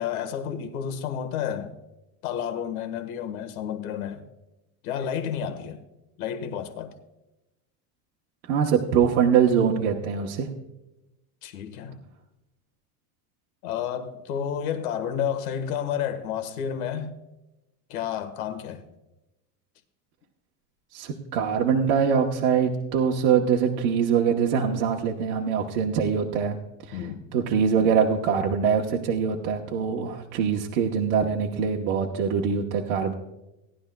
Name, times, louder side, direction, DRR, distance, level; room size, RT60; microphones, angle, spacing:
voice 1, 0.0-1.8 2.2-4.2 4.8-5.8 6.2-6.9 11.4-12.0 13.6-17.1 17.9-18.8 26.9-27.2, left 8 dB, 90° left, 1.5 m, -31 dB
voice 2, 8.4-10.5 20.9-26.6 26.9-33.1, right 7 dB, 55° right, 1.0 m, -23 dB
18.0 x 11.5 x 2.2 m
cardioid pair, 170°, 42 cm